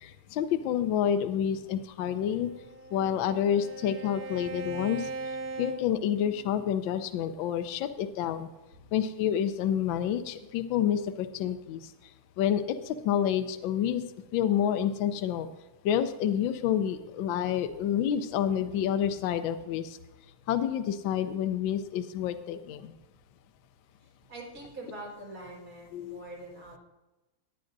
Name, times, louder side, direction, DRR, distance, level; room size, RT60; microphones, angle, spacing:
voice 1, 0.0-2.5 2.9-5.1 5.6-8.5 8.9-11.8 12.4-14.0 14.3-15.5 15.8-20.0 20.5-22.9 25.9-26.2, left 9 dB, 75° left, 9 dB, 1.3 m, -28 dB
Bowed string instrument, 2.2-6.7, right 3 dB, 60° right, 1.0 m, -40 dB
voice 2, 24.0-26.8, right 2 dB, 45° right, -5 dB, 4.9 m, -44 dB
18.0 x 9.0 x 2.6 m, 1.0 s
omnidirectional pair, 2.4 m